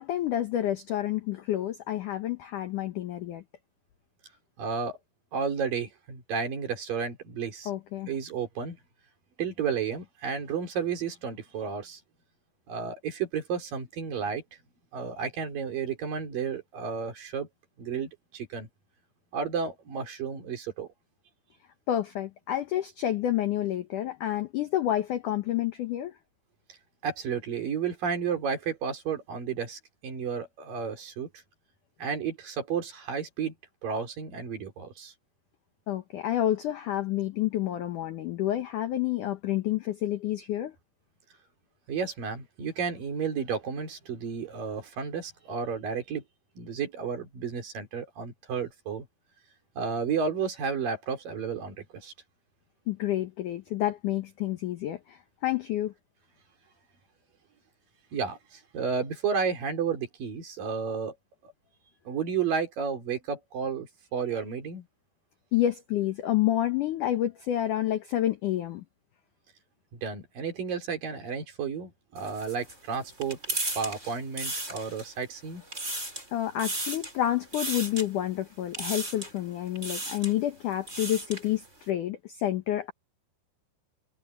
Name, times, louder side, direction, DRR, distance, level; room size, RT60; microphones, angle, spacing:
voice 1, 0.0-3.4 7.7-8.1 21.9-26.1 35.9-40.7 52.9-55.9 65.5-68.8 76.3-82.9, left 12 dB, 75° left, 1.8 m, -29 dB
voice 2, 4.6-5.0 5.3-7.7 8.1-8.8 9.4-12.0 12.7-14.4 14.9-17.5 17.8-18.7 19.3-20.9 27.0-31.3 32.0-33.5 33.8-35.1 41.9-46.2 46.6-49.1 49.8-52.1 58.1-61.1 61.4-61.5 62.0-64.9 70.0-75.6, right 6 dB, 50° right, 4.8 m, -32 dB
sound 1, 72.2-75.2 75.6-76.3 76.6-77.2 77.5-78.1 78.7-79.4 79.7-80.3 80.7-81.5, right 2 dB, 15° right, 6.8 m, -35 dB
omnidirectional pair, 5.3 m